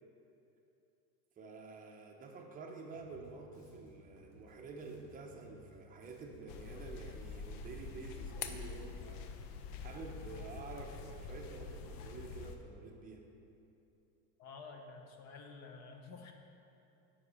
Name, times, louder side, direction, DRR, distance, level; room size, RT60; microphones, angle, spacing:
voice 1, 1.4-9.3 9.8-13.3, right 4 dB, 15° right, 0 dB, 0.7 m, -49 dB
Bass guitar, 2.9-12.8, right 1 dB, 90° left, 1.8 m, -61 dB
sound 1, 6.5-12.6, left 5 dB, 65° left, 0.7 m, -46 dB
voice 2, 14.4-16.3, left 4 dB, 35° left, 4 dB, 0.8 m, -51 dB
7.7 x 5.6 x 4.9 m, 2.8 s
supercardioid pair, 135°, 50 cm